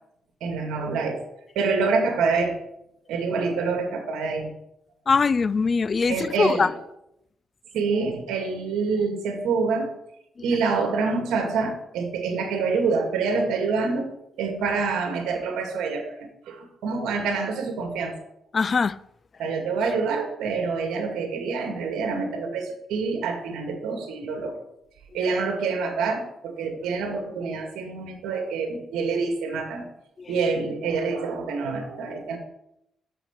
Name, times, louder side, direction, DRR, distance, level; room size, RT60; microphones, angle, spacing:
voice 1, 0.4-1.2 1.6-2.6 3.1-4.5 6.1-6.7 7.7-9.9 10.4-14.1 14.4-16.2 16.5-18.1 19.4-24.6 25.1-29.8 30.3-32.4, right 4 dB, 85° right, 2.0 m, -26 dB
voice 2, 5.1-6.7 18.5-19.0 30.2-30.3, left 5 dB, 40° left, 0.3 m, -22 dB
6.9 x 5.9 x 7.2 m
cardioid pair, 90°, 0 cm